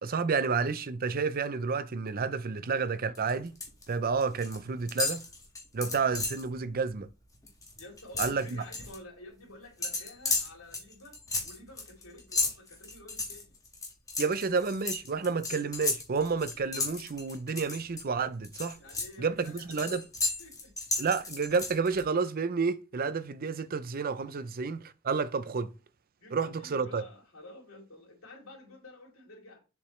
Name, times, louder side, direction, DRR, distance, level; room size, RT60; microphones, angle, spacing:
voice 1, 0.0-3.5 3.9-5.2 5.7-7.1 8.2-8.6 14.2-18.8 19.2-20.0 21.0-25.7 26.3-27.0, right 5 dB, 45° right, 0.5 m, -30 dB
sound 1, 3.1-3.8 4.1-4.6 4.9-6.5 6.9-7.1 7.3-9.0 9.8-18.0 18.4-22.0, left 3 dB, 15° left, 1.8 m, -34 dB
voice 2, 7.8-13.5 18.8-20.7 24.3-24.4 26.2-29.6, left 1 dB, 85° left, 3.3 m, -51 dB
7.2 x 4.8 x 3.2 m
head